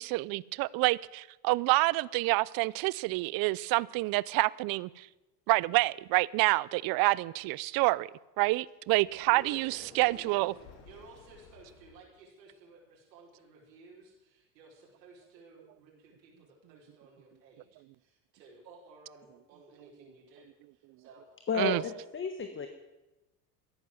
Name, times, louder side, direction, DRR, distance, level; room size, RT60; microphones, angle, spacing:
voice 1, 0.0-5.1 5.5-8.1 8.4-10.5 21.5-21.8, right 22 dB, 45° right, 0.6 m, -28 dB
Sliding door, 9.0-12.0, left 4 dB, 70° left, 3.7 m, -54 dB
voice 2, 9.3-10.3 10.8-21.3, right 3 dB, 80° right, 4.8 m, -55 dB
voice 3, 21.5-22.7, left 6 dB, 25° left, 1.4 m, -32 dB
14.0 x 11.0 x 7.6 m
hypercardioid pair, 90°, 49 cm